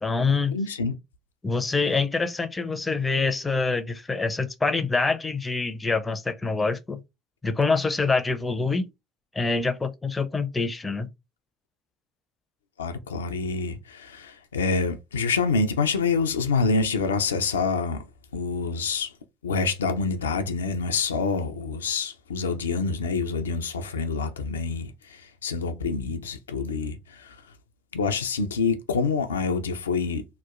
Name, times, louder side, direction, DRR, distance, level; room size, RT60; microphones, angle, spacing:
voice 1, 0.0-0.5 1.4-7.0 7.4-8.9 9.3-11.1, left 4 dB, 20° left, 0.5 m, -25 dB
voice 2, 0.5-1.0 12.8-18.1 18.3-19.1 19.4-27.4 27.9-30.3, left 4 dB, 85° left, 0.3 m, -27 dB
2.8 x 2.1 x 2.4 m
hypercardioid pair, 65°, 0 cm